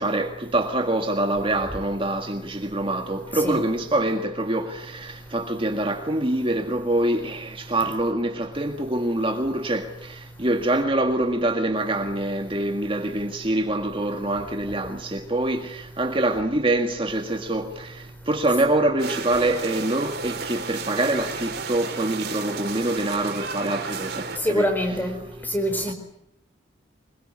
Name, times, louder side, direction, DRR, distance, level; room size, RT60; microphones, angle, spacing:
voice 1, 0.0-25.5 25.9-26.0, right 1 dB, 30° right, 1.8 m, -25 dB
sound 1, 19.0-24.4, right 5 dB, 55° right, 3.9 m, -33 dB
voice 2, 24.4-25.2 25.5-25.9, equal, 10° left, 4.6 m, -24 dB
25.0 x 22.0 x 9.7 m
head